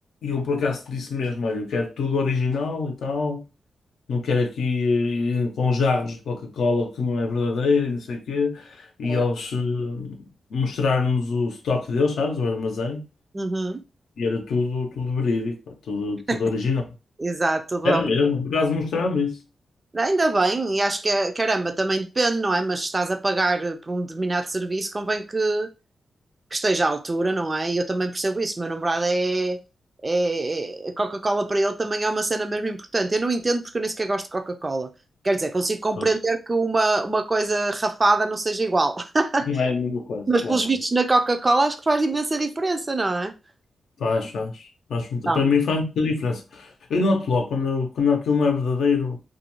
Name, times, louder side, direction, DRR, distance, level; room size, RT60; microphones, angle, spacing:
voice 1, 0.2-3.4 4.1-10.2 10.5-13.0 14.2-16.9 17.8-19.4 36.0-36.1 39.5-40.6 44.0-49.2, left 4 dB, 85° left, 0.6 m, -24 dB
voice 2, 13.3-13.8 16.3-16.4 17.2-18.1 19.9-25.7 26.5-29.6 30.0-34.9 35.2-39.5 40.3-43.3 45.3-45.5, right 2 dB, 25° right, 0.3 m, -24 dB
2.4 x 2.2 x 2.9 m
wide cardioid pair, 120°, 0 cm